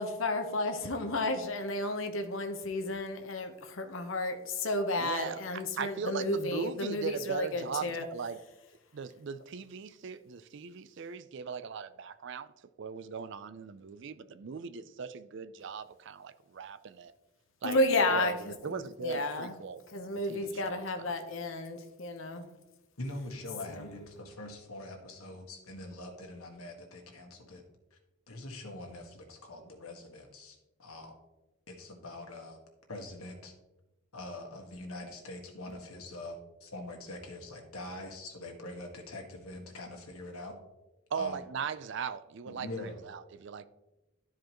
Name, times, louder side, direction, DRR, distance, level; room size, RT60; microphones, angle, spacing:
voice 1, 0.0-8.0 17.6-19.6 19.9-22.5 23.7-23.8, left 2 dB, 65° left, 1.0 m, -32 dB
voice 2, 5.0-8.4 8.9-12.5 12.8-17.1 17.6-17.8 18.1-18.4 18.6-19.8 20.3-21.0 41.1-43.7, right 6 dB, 55° right, 0.4 m, -39 dB
voice 3, 23.0-27.6 27.9-28.0 28.3-31.1 31.7-32.6 32.9-33.5 34.1-40.5 41.1-41.4 42.5-43.0, left 2 dB, 85° left, 1.7 m, -43 dB
12.5 x 4.9 x 3.0 m
head